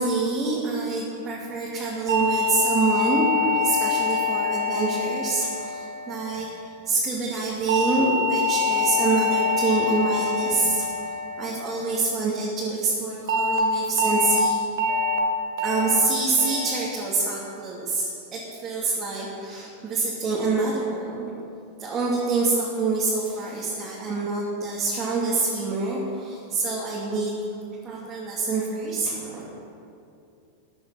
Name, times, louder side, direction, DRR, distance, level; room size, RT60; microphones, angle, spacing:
voice 1, 0.0-6.5 6.8-10.9 11.4-14.6 15.6-21.3 21.8-27.4 27.8-29.5, right 3 dB, 25° right, -6 dB, 2.8 m, -26 dB
sound 1, 2.1-6.5 7.7-12.1 13.3-13.6 14.0-14.4 14.8-15.2 15.6-16.0 16.4-16.8 17.2-17.6, left 4 dB, 60° right, 1.6 m, -25 dB
15.5 x 10.0 x 5.8 m, 2.5 s
figure-of-eight pair, 90°, 0 cm